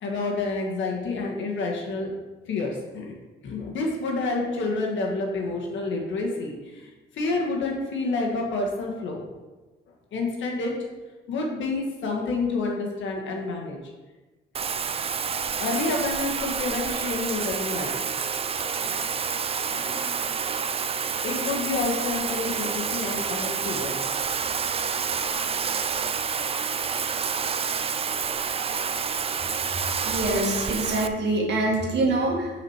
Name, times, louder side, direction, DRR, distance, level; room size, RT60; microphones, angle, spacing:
voice 1, 0.0-2.1 2.5-3.1 3.4-9.2 10.1-10.9 11.3-13.8 15.6-18.0 18.8-19.0 19.7-20.1 21.2-24.2, left 3 dB, 75° left, -1 dB, 1.6 m, -29 dB
Bathtub (filling or washing), 14.5-31.1, right 6 dB, 30° right, 0.4 m, -28 dB
voice 2, 30.0-32.5, right 2 dB, 60° right, -1 dB, 2.0 m, -25 dB
6.1 x 4.9 x 4.7 m, 1.2 s
cardioid pair, 90°, 20 cm